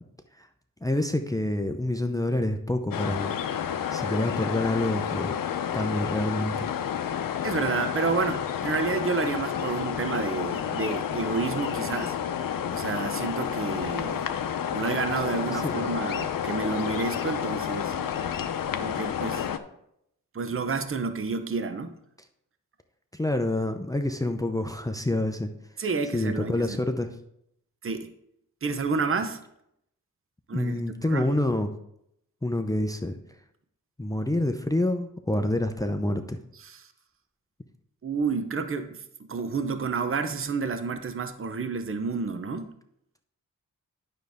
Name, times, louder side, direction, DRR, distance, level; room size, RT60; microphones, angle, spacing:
voice 1, 0.8-3.3 3.7-5.4 5.7-6.7 15.5-15.8 23.1-25.5 26.1-27.1 30.5-31.7 32.4-33.2 34.0-36.4, left 1 dB, 10° left, 6 dB, 0.6 m, -27 dB
sound 1, 2.9-19.6, left 8 dB, 75° left, 0.7 m, -30 dB
voice 2, 7.4-12.1 12.7-14.3 14.7-17.9 18.8-19.4 20.3-21.9 25.8-26.7 27.8-28.1 28.6-29.4 30.5-30.8 31.1-31.3 36.6-36.8 38.0-39.0 39.3-42.7, right 4 dB, 40° right, 9 dB, 0.8 m, -30 dB
9.0 x 6.6 x 3.6 m, 0.76 s
cardioid pair, 60°, 34 cm